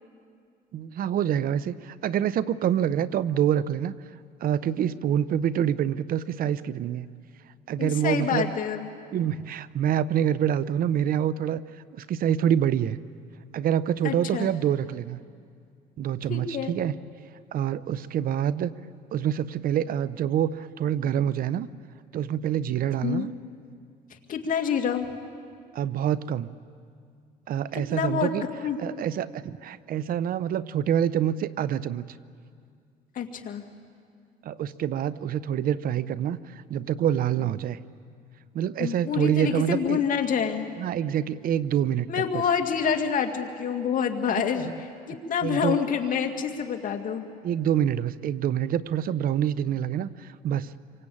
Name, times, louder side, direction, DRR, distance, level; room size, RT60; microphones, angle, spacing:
voice 1, 0.7-3.9 4.4-7.1 7.7-8.5 9.1-11.6 11.9-13.0 13.5-15.2 16.0-16.9 17.5-18.7 19.1-21.7 22.1-23.3 25.7-26.5 27.5-28.5 28.8-32.2 34.4-37.8 38.5-40.0 40.8-42.4 44.3-44.7 45.4-45.8 47.4-50.7, right 10 dB, 60° right, 16 dB, 0.8 m, -26 dB
voice 2, 7.8-8.9 14.0-14.5 16.3-16.7 23.0-23.3 24.3-25.1 27.7-28.3 28.6-28.8 33.1-33.6 38.8-40.7 42.1-44.7 45.1-47.2, left 7 dB, 55° left, 4 dB, 2.4 m, -27 dB
27.5 x 24.0 x 8.7 m, 2.2 s
cardioid pair, 110°, 17 cm